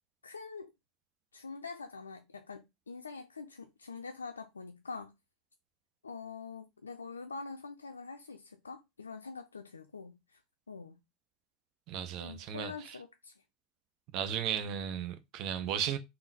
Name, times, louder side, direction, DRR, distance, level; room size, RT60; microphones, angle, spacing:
voice 1, 0.2-0.7 1.3-5.2 6.0-10.4 10.7-11.0 12.2-13.4, left 4 dB, 85° left, 0.3 m, -45 dB
voice 2, 11.9-13.0 14.1-16.0, right 9 dB, 50° right, 0.6 m, -35 dB
3.8 x 2.0 x 3.9 m
figure-of-eight pair, 80°, 0 cm